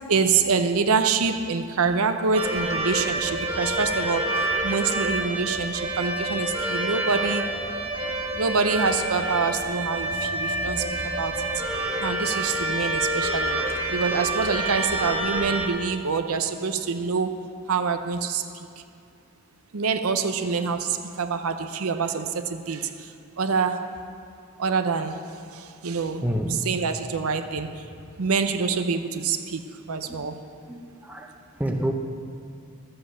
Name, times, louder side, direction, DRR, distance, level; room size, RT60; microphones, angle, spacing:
voice 1, 0.1-7.5 8.3-11.5 12.0-17.4 17.7-18.7 19.7-24.0 24.6-27.8 28.2-29.6 29.9-30.4, right 5 dB, 80° right, 8 dB, 0.7 m, -26 dB
sound 1, 2.3-15.7, right 1 dB, 25° right, 1.5 m, -27 dB
voice 2, 26.2-26.6 30.0-30.2 30.7-31.9, equal, 5° right, 2 dB, 0.7 m, -29 dB
13.0 x 7.7 x 6.8 m, 2.5 s
head